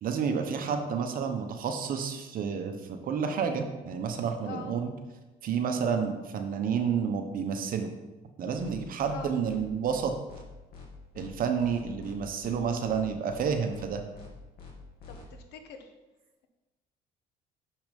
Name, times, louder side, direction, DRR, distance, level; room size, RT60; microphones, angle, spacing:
voice 1, 0.0-4.9 5.4-7.9 8.4-10.1 11.1-14.0, right 6 dB, 55° right, 6 dB, 1.0 m, -30 dB
voice 2, 4.4-4.8 9.1-9.3 15.1-15.9, left 7 dB, 85° left, 6 dB, 1.1 m, -43 dB
sound 1, 8.6-8.7 9.0-9.1 9.4-9.6 9.9-10.0 10.3-10.4 10.7-10.9 11.1-11.3 11.6-12.1 12.4-12.6 12.9-13.0 13.3-13.4 13.7-13.9 14.1-14.3 14.6-14.7 15.0-15.2, left 5 dB, 65° left, 2.3 m, -46 dB
6.5 x 5.9 x 5.2 m, 1.1 s
cardioid pair, 110°, 17 cm